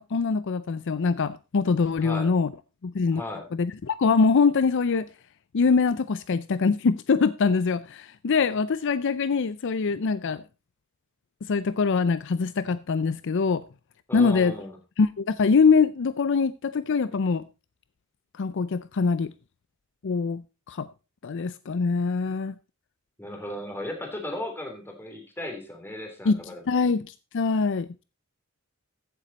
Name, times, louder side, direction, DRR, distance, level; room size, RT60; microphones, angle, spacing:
voice 1, 0.0-2.5 2.8-3.2 3.5-5.1 5.5-10.4 11.4-13.6 14.1-14.5 15.0-17.4 18.4-19.3 20.0-20.4 20.7-20.9 21.2-22.5 26.3-26.4 26.7-27.9, left 5 dB, 55° left, 0.5 m, -23 dB
voice 2, 2.0-2.3 3.1-3.5 14.1-14.8 23.2-26.8, left 1 dB, 10° left, 3.2 m, -36 dB
14.5 x 7.5 x 4.1 m
head